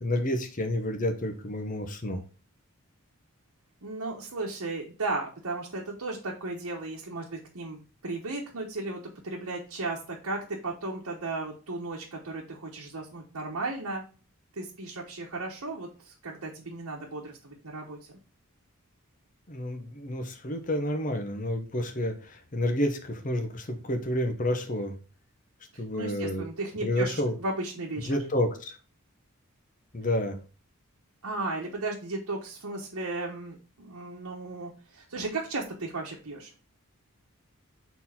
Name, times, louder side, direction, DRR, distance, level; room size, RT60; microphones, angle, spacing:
voice 1, 0.0-2.2 19.5-24.9 25.8-26.5 26.8-27.3 28.0-28.7 29.9-30.4, left 1 dB, 35° left, 5 dB, 0.9 m, -29 dB
voice 2, 3.8-14.0 14.6-18.0 25.9-28.2 31.2-36.5, right 2 dB, 85° right, -2 dB, 1.1 m, -35 dB
4.5 x 4.0 x 5.5 m, 0.36 s
head